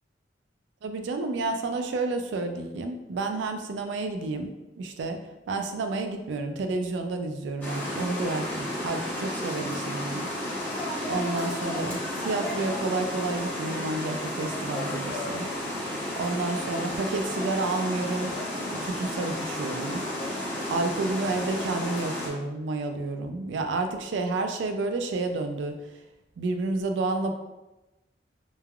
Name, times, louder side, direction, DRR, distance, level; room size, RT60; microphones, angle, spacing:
voice 1, 0.8-5.2 5.5-10.6 11.1-15.5 16.2-18.4 18.8-20.0 20.7-25.8 26.4-27.3, right 3 dB, 90° right, 6 dB, 0.3 m, -30 dB
sound 1, 7.6-22.3, left 1 dB, 10° left, 0.7 m, -32 dB
3.1 x 2.3 x 2.2 m, 1.0 s
head